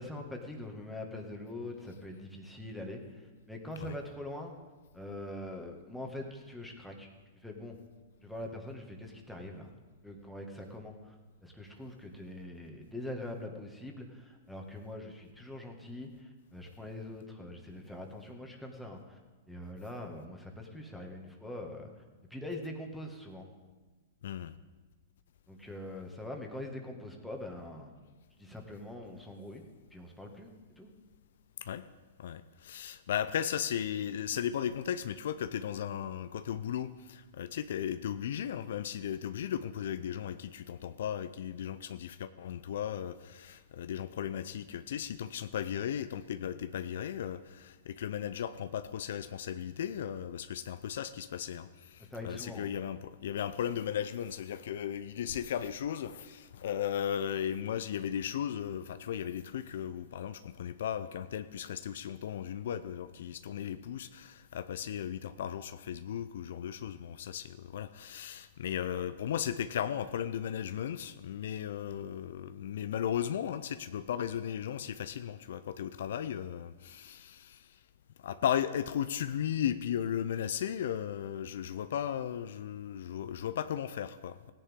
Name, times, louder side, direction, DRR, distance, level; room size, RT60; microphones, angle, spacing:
voice 1, 0.0-4.5 4.9-7.1 7.4-7.8 8.2-9.7 10.0-11.2 11.4-19.2 19.5-21.9 22.3-23.5 25.5-27.9 28.4-29.6 29.9-30.5 30.8-30.9 52.1-52.7, left 1 dB, ahead, 1 dB, 1.9 m, -43 dB
voice 2, 24.2-24.5 31.6-31.8 32.2-77.8 78.2-84.5, left 9 dB, 65° left, 12 dB, 0.5 m, -36 dB
17.0 x 9.9 x 3.7 m, 1.3 s
hypercardioid pair, 110°, 0 cm